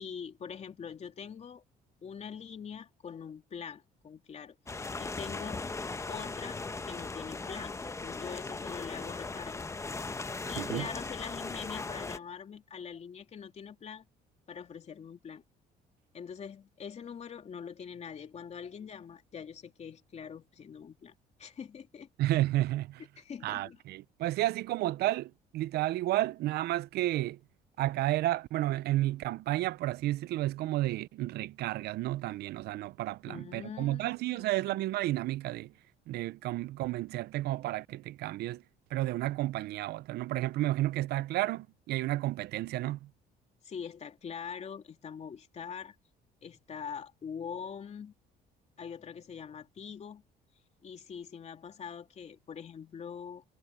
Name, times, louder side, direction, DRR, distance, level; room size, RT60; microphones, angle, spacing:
voice 1, 0.0-1.6 2.0-4.5 5.0-5.7 6.1-9.6 10.5-14.0 14.5-15.4 16.1-21.1 21.4-22.1 23.2-23.8 33.3-34.8 43.6-45.9 46.4-48.1 48.8-50.2 50.8-53.4, left 7 dB, 40° left, 2.8 m, -43 dB
sound 1, 4.7-12.2, left 3 dB, 15° left, 1.0 m, -38 dB
voice 2, 10.6-10.9 22.2-23.0 23.4-27.4 27.8-35.7 36.1-38.6 38.9-43.1, right 16 dB, 75° right, 0.6 m, -31 dB
cardioid pair, 110°, 17 cm